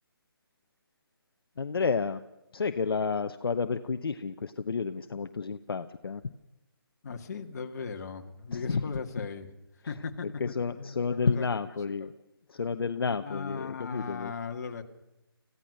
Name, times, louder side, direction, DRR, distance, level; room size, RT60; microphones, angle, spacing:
voice 1, 1.6-2.2 2.5-6.2 8.5-8.8 9.2-9.3 10.2-12.1 12.5-14.3, left 5 dB, 65° left, 8 dB, 0.9 m, -30 dB
voice 2, 7.0-9.5 9.7-11.4 11.9-12.1 13.2-14.8, left 5 dB, 45° left, 5 dB, 1.9 m, -38 dB
26.0 x 15.5 x 6.5 m, 0.91 s
figure-of-eight pair, 160°, 13 cm